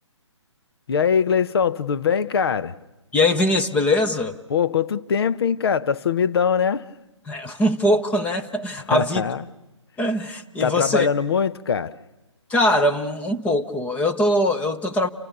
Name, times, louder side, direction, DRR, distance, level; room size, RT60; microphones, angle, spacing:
voice 1, 0.9-2.8 4.5-6.9 8.9-9.5 10.6-11.9, left 7 dB, 55° left, 0.9 m, -22 dB
voice 2, 3.1-4.4 7.3-9.2 10.0-11.1 12.5-15.1, left 1 dB, 10° left, 0.9 m, -21 dB
29.5 x 25.5 x 6.8 m
figure-of-eight pair, 145°, 16 cm